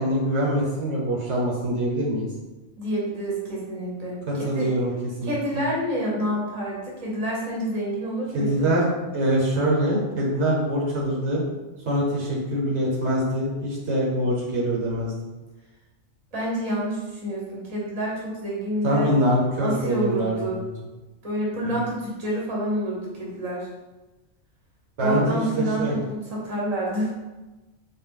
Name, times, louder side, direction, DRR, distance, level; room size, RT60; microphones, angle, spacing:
voice 1, 0.0-2.3 4.3-4.9 5.2-5.6 8.3-8.9 9.1-11.4 11.9-15.1 18.8-20.7 21.6-21.8 25.0-25.9, right 1 dB, 70° right, -4 dB, 1.2 m, -24 dB
voice 2, 2.8-4.7 5.2-8.7 16.3-19.2 19.6-20.6 21.2-23.7 25.0-27.1, right 1 dB, 35° right, -5 dB, 1.1 m, -28 dB
3.8 x 2.5 x 3.6 m, 1.1 s
omnidirectional pair, 1.2 m